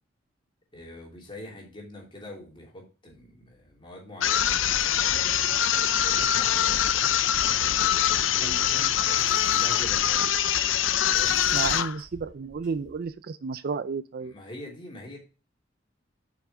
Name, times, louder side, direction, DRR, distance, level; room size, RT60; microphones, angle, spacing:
voice 1, 0.7-6.9 7.6-10.3 11.1-11.4 14.2-15.2, left 1 dB, 25° left, -1 dB, 3.1 m, -44 dB
sound 1, 4.2-12.0, left 10 dB, 80° left, 0.6 m, -24 dB
sound 2, 7.4-13.1, equal, 5° right, 4.8 m, -49 dB
voice 2, 8.4-8.9 11.5-14.3, right 5 dB, 50° right, 14 dB, 0.4 m, -33 dB
8.3 x 5.9 x 3.8 m, 0.33 s
head